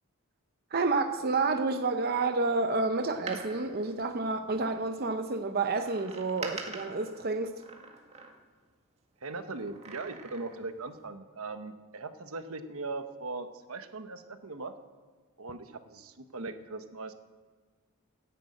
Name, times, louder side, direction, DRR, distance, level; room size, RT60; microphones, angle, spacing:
voice 1, 0.7-7.5, right 3 dB, 45° right, 5 dB, 0.7 m, -29 dB
Door, 3.1-4.9 5.8-8.7 9.6-10.8 11.1-11.2, right 3 dB, 30° right, 1.8 m, -45 dB
voice 2, 9.2-14.7 15.4-17.1, right 3 dB, 80° right, 8 dB, 1.1 m, -39 dB
11.0 x 10.5 x 8.6 m, 1.5 s
head